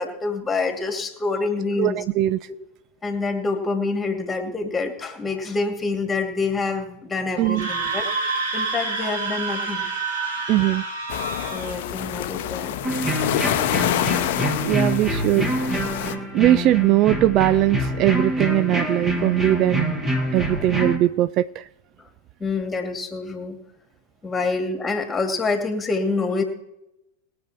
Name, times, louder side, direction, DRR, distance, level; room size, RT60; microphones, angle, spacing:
voice 1, 0.0-2.0 3.0-8.1 8.5-9.9 11.5-12.8 20.4-20.5 22.0-22.1 22.4-23.6 24.2-26.4, left 3 dB, 15° left, 4 dB, 2.5 m, -26 dB
voice 2, 1.8-2.4 7.4-7.7 10.5-10.8 14.6-15.5 16.3-20.0 20.3-21.7, right 15 dB, 35° right, 15 dB, 0.3 m, -20 dB
Screaming, 7.4-11.8, right 3 dB, 55° right, 3.7 m, -28 dB
sound 1, 11.1-16.1, left 12 dB, 50° left, 0.8 m, -27 dB
sound 2, 12.8-21.0, equal, 20° right, 2.4 m, -26 dB
21.0 x 7.0 x 4.5 m, 0.86 s
figure-of-eight pair, 90°, 0 cm